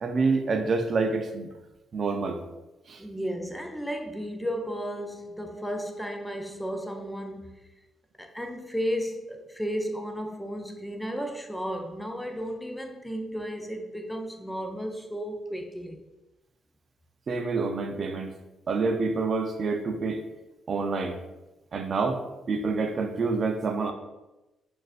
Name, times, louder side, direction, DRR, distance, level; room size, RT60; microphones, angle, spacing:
voice 1, 0.0-1.5 1.9-2.4 2.9-3.0 17.3-18.3 18.7-20.2 20.7-21.2 21.7-22.2 22.5-23.9, right 4 dB, 45° right, 0.4 m, -27 dB
voice 2, 3.0-7.5 8.2-16.0, equal, 5° left, 0.5 m, -34 dB
6.4 x 2.5 x 2.4 m
cardioid pair, 90°, 0 cm